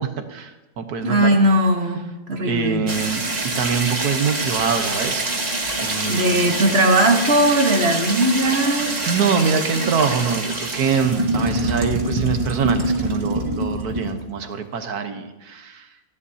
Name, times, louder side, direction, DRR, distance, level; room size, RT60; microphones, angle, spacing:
voice 1, 0.0-1.4 2.4-3.2 3.6-5.2 5.8-6.4 9.1-15.9, right 6 dB, 80° right, 7 dB, 1.6 m, -24 dB
voice 2, 1.0-2.0 2.3-2.8 6.1-9.0, right 1 dB, 45° right, 4 dB, 1.6 m, -18 dB
sound 1, 2.9-14.2, right 2 dB, 25° right, 1.6 m, -25 dB
30.0 x 11.0 x 2.8 m, 1.0 s
omnidirectional pair, 1.6 m